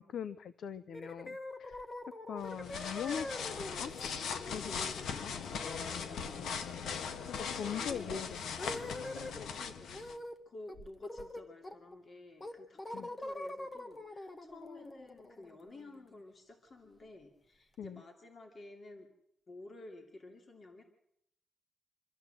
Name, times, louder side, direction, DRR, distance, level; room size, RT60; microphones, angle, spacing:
voice 1, 0.0-1.8 2.3-3.4 3.8-3.9 4.4-5.3 7.4-8.9 12.9-13.1 17.8-18.0, left 8 dB, 65° left, 14 dB, 0.7 m, -42 dB
sound 1, 0.9-9.5 9.9-10.4 10.7-12.0 12.4-16.2, left 2 dB, 20° left, 1.3 m, -45 dB
sound 2, 2.4-10.2, left 6 dB, 85° left, 1.4 m, -40 dB
voice 2, 7.5-7.9 9.3-19.1 19.5-20.8, left 2 dB, 35° left, 3 dB, 2.6 m, -52 dB
25.5 x 14.0 x 7.7 m, 0.75 s
wide cardioid pair, 160°, 0 cm